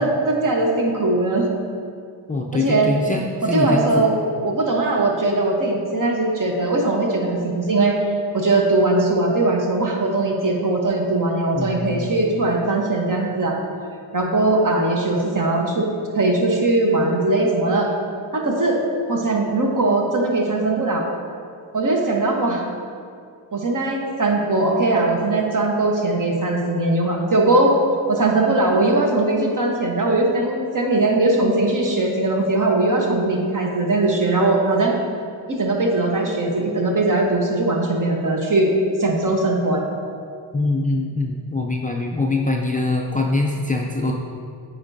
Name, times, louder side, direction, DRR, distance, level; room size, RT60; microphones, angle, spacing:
voice 1, 0.0-1.5 2.5-2.9 3.5-7.9 8.3-13.6 14.1-15.9 16.1-17.9 18.3-18.8 19.1-21.0 21.7-22.6 23.5-27.7 28.1-35.0 35.5-38.7 39.0-39.8, right 2 dB, 40° right, 0 dB, 1.1 m, -20 dB
voice 2, 2.3-4.0 11.5-12.1 40.5-44.1, left 2 dB, 20° left, 0 dB, 0.4 m, -23 dB
8.6 x 4.5 x 2.7 m, 2.4 s
cardioid pair, 60°, 47 cm